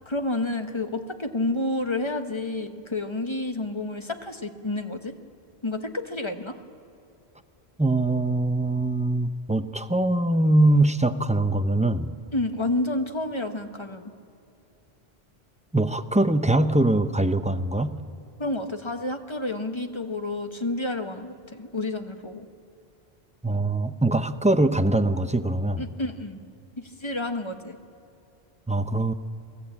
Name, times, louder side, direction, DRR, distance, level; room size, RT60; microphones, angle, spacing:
voice 1, 0.1-5.1 5.6-6.6 12.3-14.1 18.4-22.5 25.8-26.4 26.8-27.8, left 2 dB, 30° left, 7 dB, 1.1 m, -30 dB
voice 2, 7.8-12.1 15.7-18.0 23.4-25.8 28.7-29.1, right 2 dB, 10° right, 9 dB, 0.5 m, -22 dB
24.0 x 15.5 x 8.5 m, 2.7 s
omnidirectional pair, 1.1 m